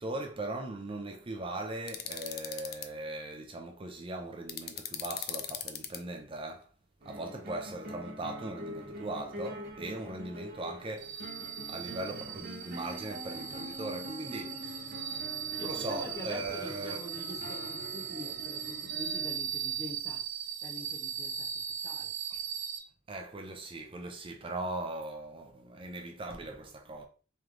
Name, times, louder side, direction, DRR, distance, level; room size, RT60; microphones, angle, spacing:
voice 1, 0.0-6.7 7.0-11.3 11.7-17.0 22.3-22.4 23.1-27.0, right 2 dB, 30° right, 0.5 m, -39 dB
sound 1, 1.9-2.9 4.5-6.0, left 10 dB, 55° left, 0.4 m, -38 dB
sound 2, 7.0-19.4, equal, 50° right, 1.2 m, -44 dB
sound 3, 11.0-22.8, right 8 dB, 75° right, 0.8 m, -38 dB
voice 2, 15.6-20.2 20.6-21.5 21.8-22.1, left 2 dB, 20° left, 0.8 m, -45 dB
3.2 x 3.1 x 3.7 m
head